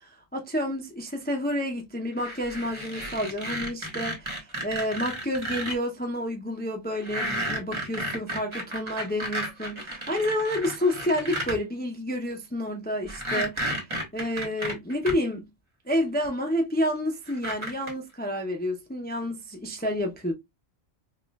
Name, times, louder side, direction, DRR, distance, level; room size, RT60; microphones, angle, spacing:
voice 1, 0.0-13.8 14.1-15.5 15.9-20.3, left 1 dB, 15° left, 0.3 m, -29 dB
sound 1, 2.2-5.7 7.0-11.6 13.1-15.1 16.2-16.3 17.3-17.9, right 1 dB, 25° right, 1.3 m, -32 dB
5.2 x 2.4 x 2.2 m
omnidirectional pair, 1.3 m